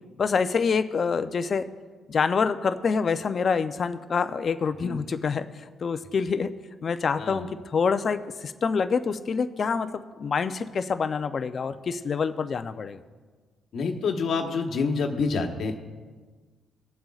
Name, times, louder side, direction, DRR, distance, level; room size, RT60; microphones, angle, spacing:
voice 1, 0.2-1.7 2.1-5.5 5.8-6.5 6.8-13.0, left 5 dB, 45° left, 10 dB, 0.6 m, -26 dB
voice 2, 7.2-7.5 13.7-15.8, left 4 dB, 65° left, 3 dB, 1.3 m, -27 dB
21.0 x 7.6 x 2.4 m, 1.4 s
cardioid pair, 90°, 0 cm